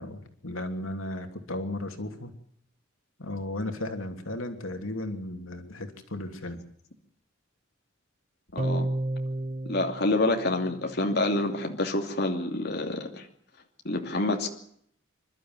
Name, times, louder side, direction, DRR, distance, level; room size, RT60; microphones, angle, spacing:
voice 1, 0.0-2.3 3.2-6.6, left 1 dB, 90° left, 5 dB, 3.0 m, -35 dB
voice 2, 8.5-8.9 9.6-13.2 13.8-14.5, left 2 dB, 55° left, 2 dB, 2.7 m, -27 dB
sound 1, 8.6-11.2, right 1 dB, 35° right, 1.0 m, -32 dB
28.0 x 12.5 x 9.5 m, 0.68 s
head